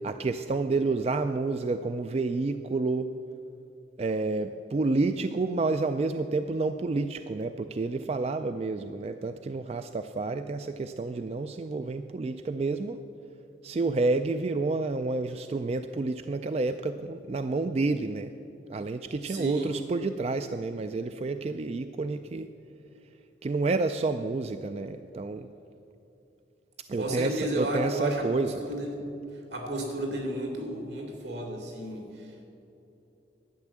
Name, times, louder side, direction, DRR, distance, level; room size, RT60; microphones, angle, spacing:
voice 1, 0.0-3.1 4.0-13.0 13.6-18.3 18.7-22.5 23.4-25.5 26.9-28.6, right 3 dB, 35° right, 9 dB, 0.3 m, -29 dB
voice 2, 19.2-19.7 26.9-29.0 29.5-32.5, right 1 dB, 75° right, 1 dB, 2.8 m, -33 dB
12.0 x 8.9 x 7.4 m, 2.9 s
head